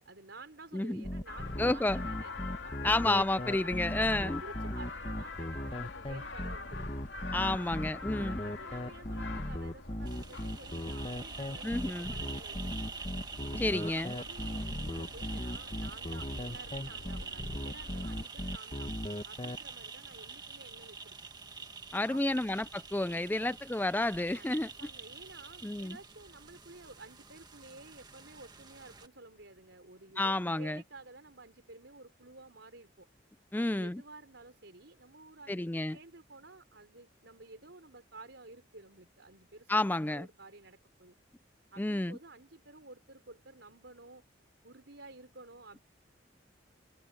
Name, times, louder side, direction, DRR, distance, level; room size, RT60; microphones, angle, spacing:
voice 1, 0.0-2.4 2.6-3.1 3.6-6.9 7.4-12.7 13.4-18.9 19.2-21.2 22.1-22.5 23.1-23.5 24.3-33.1 33.5-41.2 41.7-44.2 44.6-45.8, right 2 dB, 75° right, 4.3 m, -52 dB
voice 2, 0.7-1.0 1.6-2.0 2.8-4.4 7.3-8.4 11.6-12.1 13.6-14.1 21.9-24.7 25.6-26.0 30.2-30.8 33.5-34.0 35.5-36.0 39.7-40.3 41.8-42.2, left 2 dB, 10° left, 0.4 m, -30 dB
sound 1, 1.0-19.6, left 1 dB, 30° left, 1.4 m, -37 dB
sound 2, 1.3-18.3, left 4 dB, 70° left, 2.8 m, -45 dB
sound 3, 10.1-29.1, right 4 dB, 25° right, 1.7 m, -46 dB
head